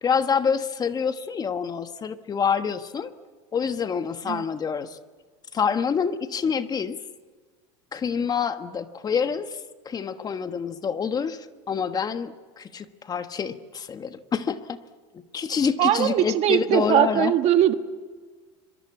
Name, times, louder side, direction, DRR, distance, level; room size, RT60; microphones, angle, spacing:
voice 1, 0.0-3.1 3.5-5.0 5.5-7.0 7.9-9.6 9.8-11.4 11.7-14.8 15.1-17.3, left 6 dB, 30° left, 10 dB, 1.3 m, -27 dB
voice 2, 15.8-17.7, right 11 dB, 50° right, 9 dB, 1.5 m, -20 dB
25.0 x 23.0 x 8.4 m, 1.5 s
supercardioid pair, 110°, 14 cm